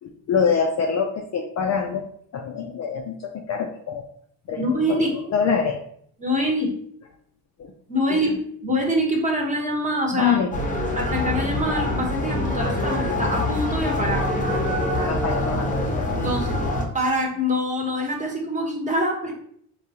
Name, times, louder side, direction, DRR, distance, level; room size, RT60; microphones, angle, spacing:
voice 1, 0.0-2.0 2.3-4.1 4.5-5.8 7.6-7.7 8.1-8.2 10.1-10.5 15.0-15.7 16.0-16.3, left 6 dB, 40° left, 3 dB, 0.4 m, -25 dB
voice 2, 4.6-5.1 6.2-6.7 7.9-10.4 10.9-14.2 16.2-16.6 16.9-19.3, equal, 15° right, 0 dB, 1.0 m, -24 dB
sound 1, 10.5-16.8, left 1 dB, 20° left, 0.8 m, -25 dB
3.5 x 2.4 x 2.7 m, 0.65 s
supercardioid pair, 70°, 43 cm